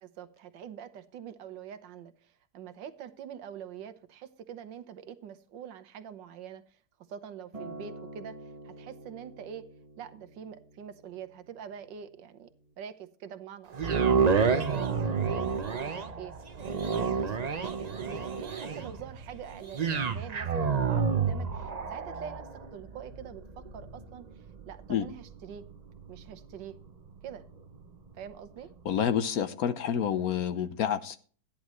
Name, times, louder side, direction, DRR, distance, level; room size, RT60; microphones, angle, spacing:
voice 1, 0.0-6.8 7.1-9.7 10.0-12.5 12.8-14.9 15.3-16.3 16.6-24.3 24.6-25.7 26.1-26.8 27.2-27.4 28.1-28.7, right 8 dB, 85° right, 9 dB, 1.6 m, -45 dB
Acoustic guitar, 7.5-11.8 12.7-12.8, right 1 dB, 20° right, 1.2 m, -47 dB
sound 1, 13.7-27.9 28.5-28.6, right 5 dB, 55° right, 0.4 m, -30 dB
voice 2, 28.8-31.2, left 8 dB, 65° left, 11 dB, 1.1 m, -28 dB
13.5 x 10.0 x 3.1 m, 0.41 s
omnidirectional pair, 1.9 m